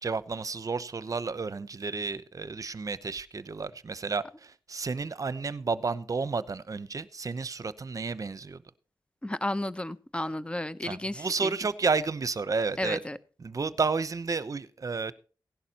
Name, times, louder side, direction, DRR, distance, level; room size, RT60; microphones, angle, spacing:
voice 1, 0.0-8.6 10.8-13.0 13.4-15.1, right 4 dB, 45° right, 0.8 m, -31 dB
voice 2, 9.2-11.5 12.8-13.2, left 1 dB, 15° left, 0.8 m, -33 dB
16.5 x 11.5 x 2.9 m
wide cardioid pair, 105°, 8 cm